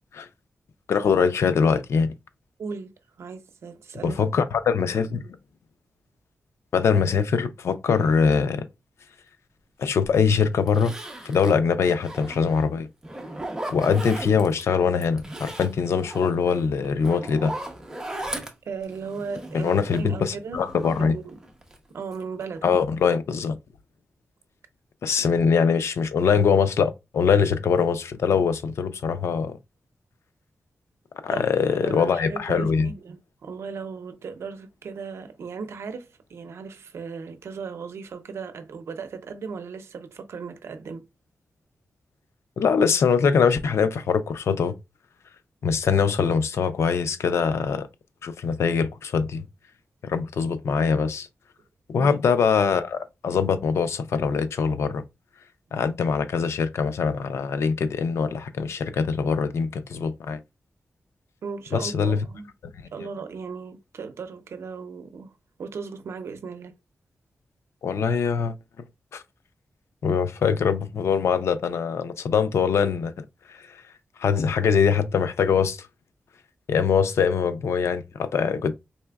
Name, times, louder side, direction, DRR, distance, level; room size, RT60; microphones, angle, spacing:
voice 1, 0.9-2.1 4.0-5.2 6.7-8.7 9.8-10.9 11.2-12.9 13.7-17.5 19.5-21.2 22.6-23.6 25.0-29.6 31.2-32.9 42.6-44.8 45.6-47.9 48.2-49.5 50.0-51.3 51.9-55.0 55.7-60.4 61.7-62.2 67.8-68.5 69.1-69.2 70.0-73.1 73.5-73.8 74.2-75.9 76.7-78.7, left 6 dB, 80° left, 0.5 m, -23 dB
voice 2, 2.6-2.9 3.2-4.2 18.6-20.6 21.0-21.4 21.9-22.7 25.2-25.3 31.3-41.1 51.9-52.1 61.4-62.5 62.9-65.3 65.6-66.7, right 5 dB, 80° right, 0.6 m, -36 dB
Zipper (clothing), 10.0-10.1 10.7-12.7 13.0-14.6 15.0-20.2 20.5-21.8 22.1-22.6 22.9-23.0, right 1 dB, 15° right, 0.7 m, -37 dB
4.2 x 3.3 x 2.3 m
wide cardioid pair, 140°, 5 cm